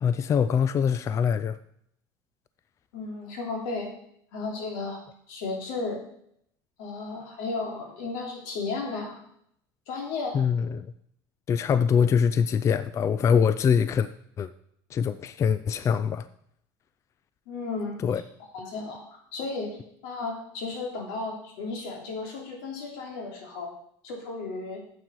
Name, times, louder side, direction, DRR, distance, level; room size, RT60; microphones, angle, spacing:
voice 1, 0.0-1.6 10.3-10.9 11.5-14.1 14.4-14.5 14.9-16.3 18.0-18.2, left 7 dB, 30° left, 14 dB, 0.4 m, -23 dB
voice 2, 2.9-3.9 4.3-5.0 5.3-6.0 6.8-9.2 9.9-10.4 17.5-17.9 18.5-23.7 24.0-24.8, left 3 dB, 85° left, 0 dB, 3.0 m, -34 dB
9.3 x 7.9 x 4.6 m, 0.71 s
cardioid pair, 130°, 10 cm